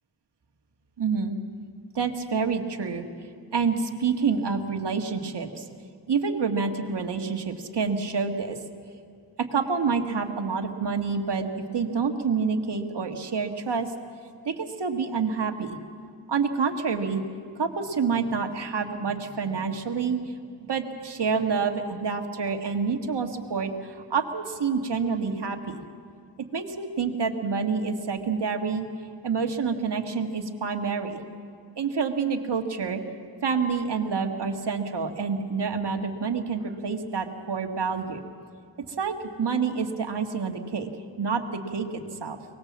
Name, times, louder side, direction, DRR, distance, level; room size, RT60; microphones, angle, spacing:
voice 1, 1.0-1.4 1.9-3.0 3.5-5.6 6.1-8.6 9.4-11.5 11.7-13.9 14.4-15.8 16.3-17.2 17.6-20.2 20.7-25.8 26.5-28.9 29.2-31.2 31.8-33.0 33.4-38.2 39.0-40.9 41.2-42.4, right 5 dB, 65° right, 4 dB, 1.8 m, -27 dB
23.5 x 19.0 x 7.4 m, 2.4 s
cardioid pair, 60°, 43 cm